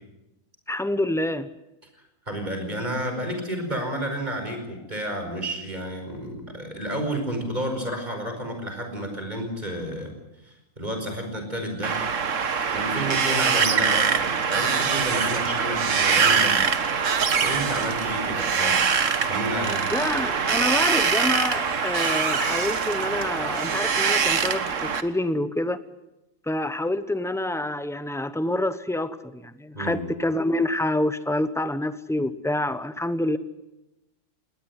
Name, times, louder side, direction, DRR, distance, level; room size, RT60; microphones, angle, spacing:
voice 1, 0.7-1.5 19.9-25.8 26.5-33.4, left 1 dB, 5° left, 12 dB, 0.6 m, -27 dB
voice 2, 2.3-10.1 10.4-12.0 12.7-16.7 17.4-18.8 19.3-19.8 29.7-30.0, right 1 dB, 25° right, 5 dB, 5.3 m, -31 dB
Wind, 11.8-25.0, right 6 dB, 55° right, 1.6 m, -23 dB
20.0 x 19.0 x 9.9 m, 0.94 s
omnidirectional pair, 1.7 m